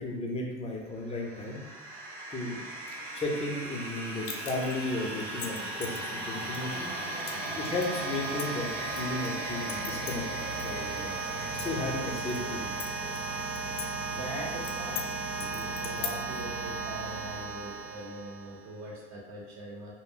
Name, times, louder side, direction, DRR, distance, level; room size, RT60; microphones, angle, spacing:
voice 1, 0.0-1.6 2.3-2.7 3.1-6.9 7.6-10.3 10.6-11.2 11.6-12.7, left 2 dB, 15° left, -1 dB, 0.5 m, -34 dB
sound 1, 1.1-18.7, right 3 dB, 70° right, 0.7 m, -36 dB
sound 2, 4.2-4.8 5.2-6.0 6.5-6.6 7.3-7.5 7.8-9.3 9.7-10.7 11.0-11.1 11.4-12.4 12.8-13.9 14.1-14.2 14.6-15.1 15.4-16.4, left 7 dB, 70° left, 0.6 m, -39 dB
voice 2, 7.1-7.5 14.1-19.9, right 1 dB, 50° right, -3 dB, 1.0 m, -42 dB
2.1 x 2.0 x 3.7 m, 1.2 s
supercardioid pair, 100°, 35 cm